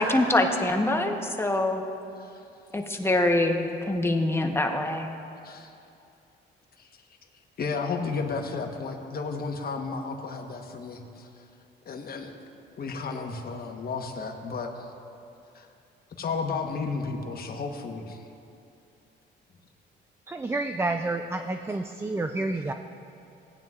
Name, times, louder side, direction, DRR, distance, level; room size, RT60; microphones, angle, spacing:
voice 1, 0.0-1.8 2.7-5.1, left 1 dB, 10° left, 3 dB, 1.0 m, -24 dB
voice 2, 7.6-11.3 11.8-12.3 12.8-14.9 15.5-15.7 16.2-18.2, left 4 dB, 50° left, 4 dB, 1.1 m, -33 dB
voice 3, 20.3-22.7, right 2 dB, 15° right, 6 dB, 0.4 m, -29 dB
17.5 x 9.2 x 2.4 m, 2.7 s
cardioid pair, 90°, 20 cm